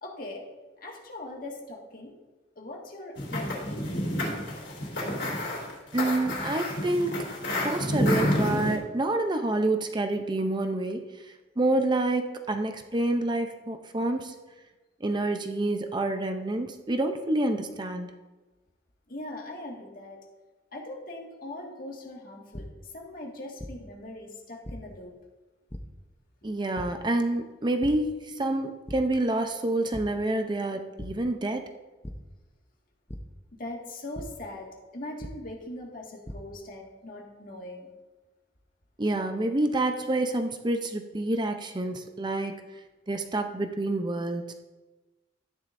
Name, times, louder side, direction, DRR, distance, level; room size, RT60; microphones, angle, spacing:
voice 1, 0.0-0.4 0.8-2.1 2.6-3.7 19.1-20.2 20.7-25.1 33.5-37.9, left 1 dB, 50° left, 0 dB, 1.9 m, -41 dB
sound 1, 3.1-8.8, left 1 dB, 75° left, 3.5 m, -29 dB
voice 2, 5.9-11.1 11.6-14.3 15.0-18.1 26.4-31.7 39.0-42.6 43.1-44.5, right 2 dB, 25° right, 6 dB, 0.6 m, -28 dB
sound 2, 22.5-22.6 23.6-23.7 24.7-24.8 25.7-25.8 26.8-26.9 27.8-27.9 28.4-28.5 28.9-29.0 29.9-30.0 31.0-31.1 32.0-32.1 33.1-33.2 34.1-34.2 35.2-35.3 36.0-36.3, left 1 dB, 10° left, 0.7 m, -38 dB
12.5 x 10.0 x 2.6 m, 1.2 s
head